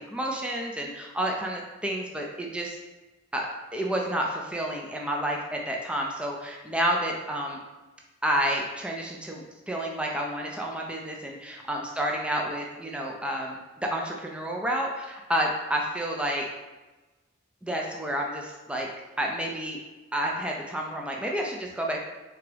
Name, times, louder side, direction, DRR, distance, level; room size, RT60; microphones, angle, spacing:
voice 1, 0.0-2.8 3.3-7.6 8.2-16.4 17.6-18.9 19.2-19.8 20.1-22.0, equal, 5° right, -1 dB, 0.4 m, -30 dB
3.8 x 3.4 x 3.4 m, 1.2 s
head